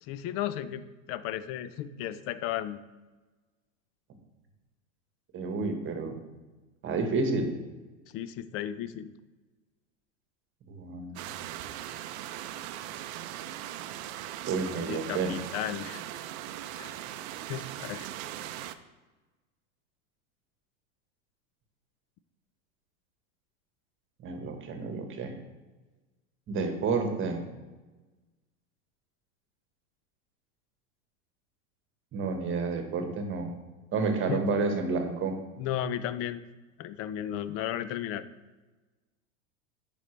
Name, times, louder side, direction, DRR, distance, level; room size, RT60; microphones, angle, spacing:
voice 1, 0.0-2.8 8.1-9.1 14.8-16.0 16.8-16.9 17.5-18.1 34.3-34.4 35.6-36.4 36.8-38.2, left 11 dB, 40° left, 14 dB, 0.4 m, -34 dB
voice 2, 5.3-6.1 6.8-7.5 10.7-11.3 14.4-15.3 24.2-25.3 26.5-27.4 32.1-33.5 33.9-35.4, right 4 dB, 30° right, 5 dB, 1.3 m, -30 dB
sound 1, 11.2-18.8, right 12 dB, 55° right, 0.6 m, -39 dB
9.2 x 5.3 x 3.2 m, 1.2 s
hypercardioid pair, 110°, 40 cm